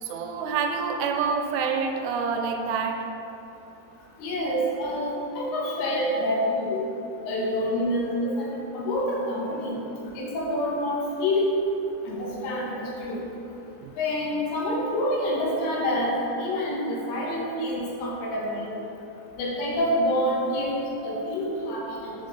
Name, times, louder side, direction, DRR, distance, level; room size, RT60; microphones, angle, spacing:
voice 1, 0.0-3.1 5.1-5.3 13.8-13.9, right 5 dB, 85° right, 4 dB, 2.6 m, -27 dB
voice 2, 4.2-6.8 7.3-9.8 10.2-11.5 12.1-13.2 14.0-18.7 19.4-22.2, left 1 dB, 75° left, -4 dB, 2.9 m, -27 dB
7.3 x 5.4 x 3.9 m, 2.9 s
omnidirectional pair, 4.8 m